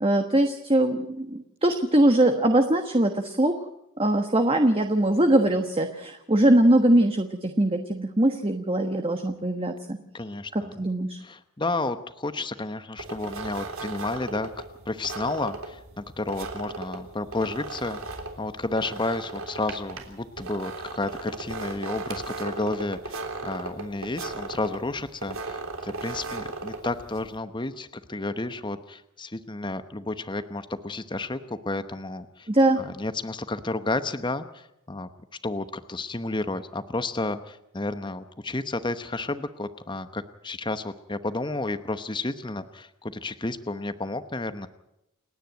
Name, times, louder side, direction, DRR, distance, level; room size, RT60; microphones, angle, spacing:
voice 1, 0.0-3.6 4.0-10.0 10.8-11.2 32.5-32.8, right 1 dB, 25° right, 6 dB, 1.3 m, -22 dB
voice 2, 10.1-10.7 11.2-14.5 14.9-32.5 32.8-35.1 35.4-44.7, left 2 dB, 20° left, 11 dB, 0.9 m, -31 dB
sound 1, 13.0-27.4, right 3 dB, 70° right, 3.5 m, -37 dB
29.5 x 10.0 x 9.2 m, 0.85 s
head